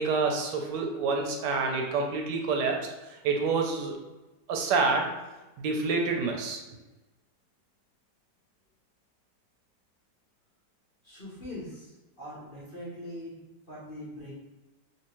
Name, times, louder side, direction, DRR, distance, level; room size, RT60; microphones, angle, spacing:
voice 1, 0.0-3.9 4.5-5.1 5.6-6.6, right 4 dB, 80° right, 2 dB, 1.2 m, -28 dB
voice 2, 11.0-13.3 13.7-14.3, left 1 dB, 35° left, -8 dB, 1.0 m, -42 dB
3.4 x 2.9 x 3.0 m, 1.1 s
omnidirectional pair, 1.9 m